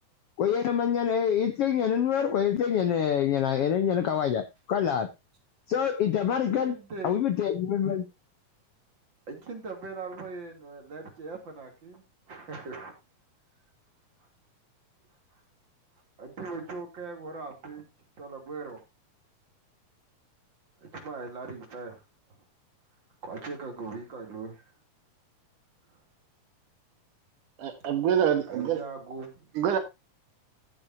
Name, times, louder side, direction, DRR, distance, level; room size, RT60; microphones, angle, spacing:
voice 1, 0.4-5.1 5.7-6.8 7.0-8.0, left 8 dB, 75° left, 1.4 m, -26 dB
voice 2, 6.5-7.1 9.3-12.9 16.2-17.9 18.2-18.8 20.8-22.0 23.2-24.7 25.9-26.0 28.5-29.5, right 4 dB, 35° right, 3.4 m, -40 dB
voice 3, 27.6-28.8 29.6-29.8, right 9 dB, 65° right, 2.8 m, -25 dB
14.5 x 8.8 x 2.8 m
omnidirectional pair, 4.1 m